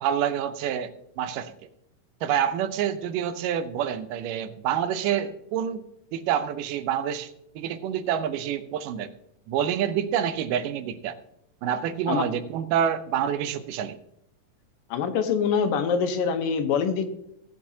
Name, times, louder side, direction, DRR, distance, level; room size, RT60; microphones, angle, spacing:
voice 1, 0.0-1.5 2.2-5.8 6.1-7.3 7.6-9.1 9.5-11.2 11.6-14.0, right 9 dB, 80° right, 11 dB, 2.3 m, -27 dB
voice 2, 14.9-17.1, left 6 dB, 80° left, 7 dB, 2.6 m, -24 dB
17.0 x 8.7 x 2.8 m, 0.76 s
omnidirectional pair, 3.9 m